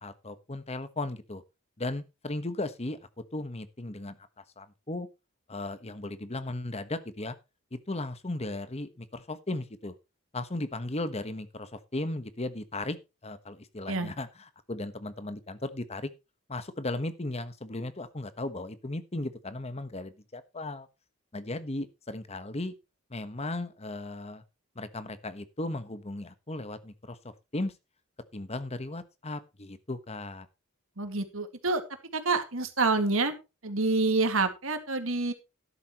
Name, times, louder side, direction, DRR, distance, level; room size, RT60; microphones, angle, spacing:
voice 1, 0.0-1.4 1.8-3.0 3.3-4.2 4.6-5.1 5.5-7.3 7.7-9.9 10.3-13.0 13.2-14.3 14.7-16.1 16.5-20.9 21.3-22.7 23.1-24.4 24.7-27.7 28.3-30.5, left 2 dB, 30° left, 12 dB, 1.2 m, -36 dB
voice 2, 31.0-31.8 32.1-33.3 33.6-35.3, right 3 dB, 70° right, 8 dB, 2.1 m, -27 dB
12.5 x 11.5 x 3.0 m, 0.27 s
head